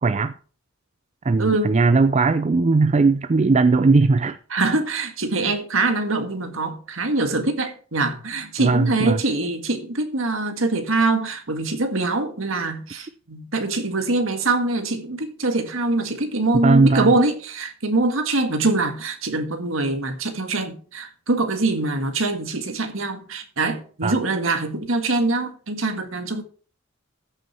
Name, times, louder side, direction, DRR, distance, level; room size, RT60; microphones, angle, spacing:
voice 1, 0.0-0.3 1.2-4.4 8.6-9.2 16.6-17.1 24.0-24.1, right 3 dB, 35° right, 0.4 m, -18 dB
voice 2, 1.4-1.8 4.5-26.4, right 2 dB, 75° right, 1.7 m, -23 dB
14.0 x 6.5 x 4.4 m
head